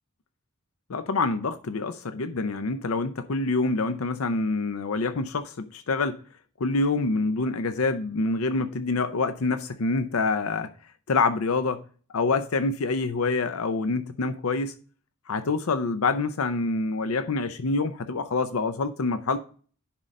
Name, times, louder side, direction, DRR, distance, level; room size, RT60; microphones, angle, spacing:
voice 1, 0.9-6.2 6.6-10.7 11.1-11.8 12.1-14.7 15.3-19.4, left 3 dB, 70° left, 0.6 m, -26 dB
10.5 x 3.8 x 5.3 m
head